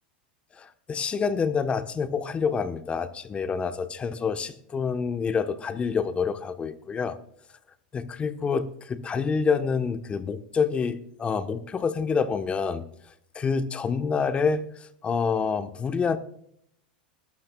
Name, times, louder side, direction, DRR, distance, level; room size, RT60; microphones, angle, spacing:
voice 1, 0.6-7.2 7.9-12.8 13.3-16.2, left 5 dB, 25° left, 10 dB, 1.2 m, -27 dB
19.5 x 12.5 x 2.4 m, 0.69 s
hypercardioid pair, 100°, 5 cm